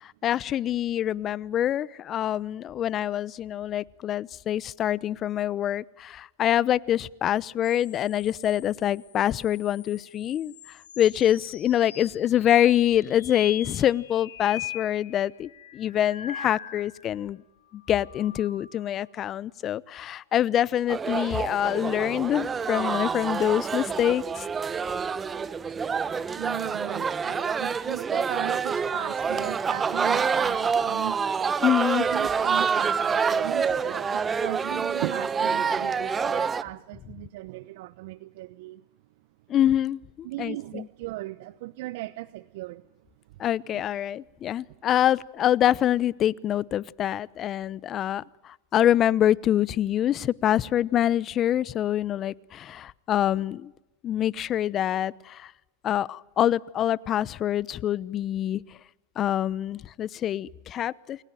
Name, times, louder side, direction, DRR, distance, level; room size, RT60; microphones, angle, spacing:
voice 1, 0.2-10.5 11.0-17.4 17.7-24.4 31.6-32.0 39.5-40.9 43.4-48.2 48.7-53.7 54.0-55.5 55.8-58.6 59.2-61.2, left 11 dB, 35° left, 0.9 m, -25 dB
sound 1, 7.6-17.2 17.6-19.0 20.8-22.0, left 9 dB, 85° left, 3.8 m, -43 dB
sound 2, 20.9-36.6, right 6 dB, 20° right, 1.1 m, -27 dB
voice 2, 26.4-31.5 32.0-38.8 40.2-42.8, right 18 dB, 65° right, 0.9 m, -37 dB
29.5 x 22.0 x 9.3 m
hypercardioid pair, 110°, 0 cm